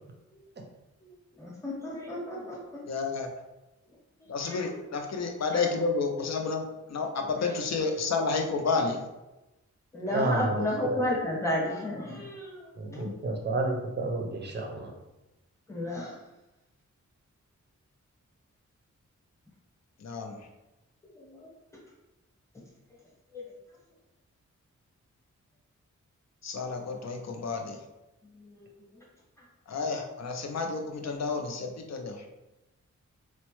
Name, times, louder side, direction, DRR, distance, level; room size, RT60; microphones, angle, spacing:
voice 1, 1.4-2.8 4.4-4.6 5.5-5.6 9.9-12.6 15.7-16.1 21.1-21.5 23.3-23.4 28.4-28.7, left 1 dB, 10° left, -4 dB, 0.9 m, -32 dB
voice 2, 2.8-3.3 4.3-6.6 6.9-9.0 10.1-10.3 12.9-13.1 20.0-20.4 26.4-27.8 29.7-32.2, left 4 dB, 60° left, 3 dB, 0.5 m, -30 dB
voice 3, 10.1-11.0 12.8-14.9, right 2 dB, 35° right, 1 dB, 0.6 m, -30 dB
4.2 x 2.1 x 3.0 m, 1.0 s
wide cardioid pair, 160°, 30 cm